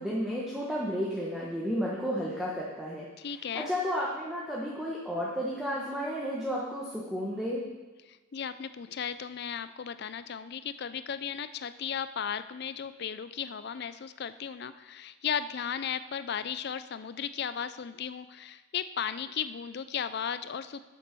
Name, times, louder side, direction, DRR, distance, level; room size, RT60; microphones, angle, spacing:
voice 1, 0.0-7.6, equal, 5° right, -6 dB, 1.2 m, -32 dB
voice 2, 3.2-3.7 8.1-20.8, left 7 dB, 55° left, 13 dB, 0.4 m, -35 dB
8.4 x 7.8 x 6.0 m, 1.2 s
head